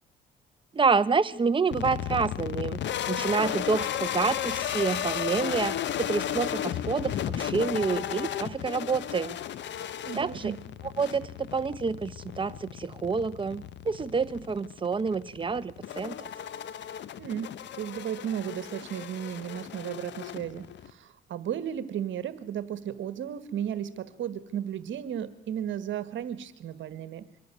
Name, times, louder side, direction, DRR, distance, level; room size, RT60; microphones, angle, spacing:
voice 1, 0.7-9.4 10.1-10.5 11.0-16.3, right 5 dB, 25° right, 14 dB, 0.8 m, -28 dB
sound 1, 1.7-20.9, left 10 dB, 65° left, 0.9 m, -34 dB
voice 2, 10.0-10.6 17.2-27.3, right 9 dB, 70° right, 14 dB, 1.4 m, -34 dB
24.0 x 11.0 x 9.7 m, 0.86 s
cardioid pair, 90°, 20 cm